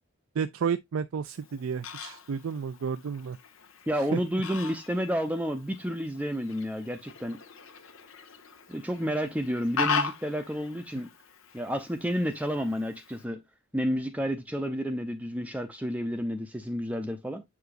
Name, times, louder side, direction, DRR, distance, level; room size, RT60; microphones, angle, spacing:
voice 1, 0.4-3.4 4.1-4.2, right 6 dB, 85° right, 0.4 m, -31 dB
Fowl, 1.3-13.2, left 5 dB, 80° left, 1.2 m, -38 dB
voice 2, 3.9-7.4 8.7-11.1 11.5-13.4 13.7-17.4, equal, 5° right, 0.6 m, -30 dB
7.8 x 4.8 x 2.5 m
head